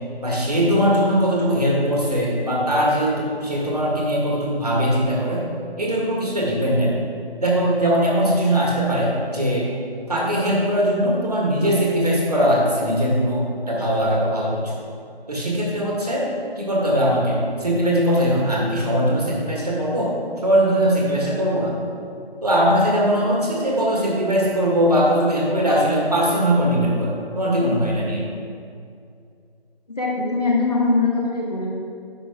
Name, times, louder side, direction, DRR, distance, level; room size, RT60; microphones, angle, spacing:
voice 1, 0.2-5.4 5.8-7.0 7.4-9.7 10.1-14.8 15.3-16.3 16.6-20.1 20.4-21.7 22.4-28.2, equal, 40° right, -4 dB, 1.9 m, -20 dB
voice 2, 29.9-31.7, left 3 dB, 40° left, -3 dB, 1.6 m, -21 dB
10.5 x 6.7 x 3.7 m, 2.4 s
figure-of-eight pair, 165°, 31 cm